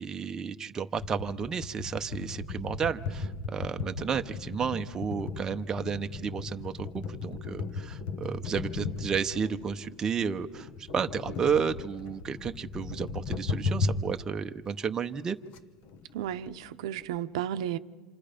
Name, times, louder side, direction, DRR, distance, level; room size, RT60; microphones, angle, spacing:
voice 1, 0.0-15.4, right 6 dB, 20° right, 0.8 m, -32 dB
sound 1, 1.0-14.2 14.7-14.8 15.0-15.2 15.5-15.6 15.8-17.2, left 4 dB, 45° left, 1.2 m, -36 dB
voice 2, 16.1-17.8, right 10 dB, 80° right, 0.8 m, -33 dB
27.5 x 27.0 x 5.2 m
supercardioid pair, 140°, 3 cm